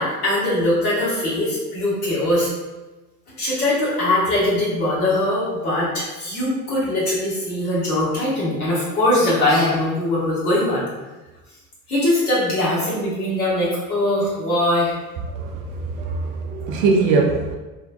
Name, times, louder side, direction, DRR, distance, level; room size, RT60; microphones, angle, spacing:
voice 1, 0.0-2.5 3.3-10.9 11.9-15.0, left 1 dB, 75° left, -8 dB, 1.3 m, -21 dB
voice 2, 15.3-17.5, right 4 dB, 45° right, 1 dB, 0.4 m, -21 dB
3.2 x 2.2 x 2.2 m, 1.1 s
figure-of-eight pair, 70°, 45 cm